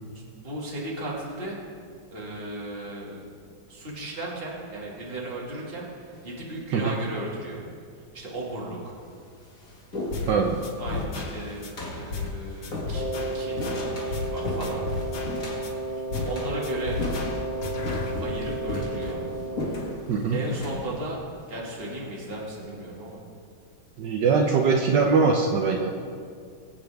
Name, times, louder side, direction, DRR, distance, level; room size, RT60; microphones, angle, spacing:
voice 1, 0.4-1.6 2.1-3.2 3.7-7.6 8.1-8.9 10.8-13.1 13.3-13.6 14.1-14.8 16.2-17.0 18.2-19.2 20.3-21.2 21.5-23.2, right 1 dB, 30° right, -4 dB, 2.3 m, -35 dB
sound 1, 6.1-6.6 7.5-7.6 8.5-8.6 8.9-22.5, left 2 dB, 45° left, 2.6 m, -36 dB
sound 2, 10.1-10.4 10.6-11.7 12.1-12.4 12.6-14.4 14.6-15.7 16.1-16.4 16.6-18.1, left 4 dB, 85° left, 2.0 m, -34 dB
voice 2, 10.3-10.6 20.1-20.4 24.0-25.9, right 5 dB, 70° right, 2 dB, 1.4 m, -22 dB
Wind instrument woodwind instrument, 12.9-20.2, right 2 dB, 20° left, 1.6 m, -33 dB
22.0 x 8.6 x 3.5 m, 2.2 s
omnidirectional pair, 2.1 m